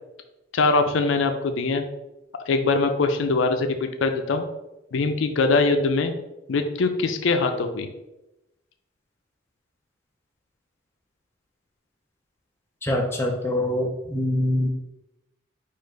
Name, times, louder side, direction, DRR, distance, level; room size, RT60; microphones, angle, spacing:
voice 1, 0.5-1.9 2.5-4.4 4.9-6.1 6.5-7.9, left 3 dB, 70° left, 6 dB, 0.4 m, -22 dB
voice 2, 12.8-14.7, left 1 dB, 10° left, 1 dB, 0.5 m, -24 dB
4.6 x 2.5 x 4.6 m, 0.95 s
head